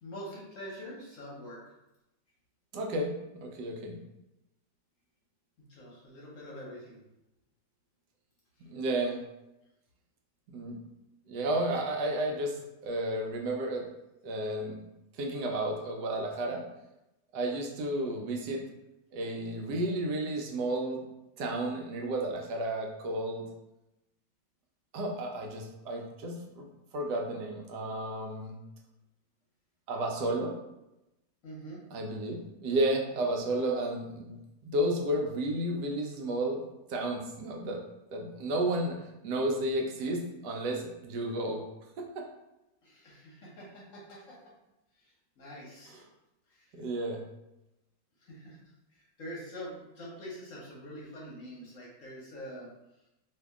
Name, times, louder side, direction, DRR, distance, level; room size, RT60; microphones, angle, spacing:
voice 1, 0.0-1.7 5.6-7.0 31.4-31.8 42.8-44.4 45.0-46.0 46.5-46.7 48.2-52.7, equal, 60° left, -4 dB, 1.0 m, -45 dB
voice 2, 2.7-4.0 8.6-9.2 10.5-10.8 11.3-12.6 12.8-13.8 14.2-14.8 15.2-16.6 17.3-18.6 19.1-21.0 21.4-23.4 24.9-26.7 26.9-28.6 29.9-30.5 31.9-34.4 34.6-36.6 36.9-37.8 38.1-41.6 42.0-42.2 45.9-46.0 46.7-47.2, right 1 dB, 75° right, 1 dB, 1.1 m, -32 dB
2.7 x 2.7 x 3.4 m, 0.93 s
omnidirectional pair, 1.8 m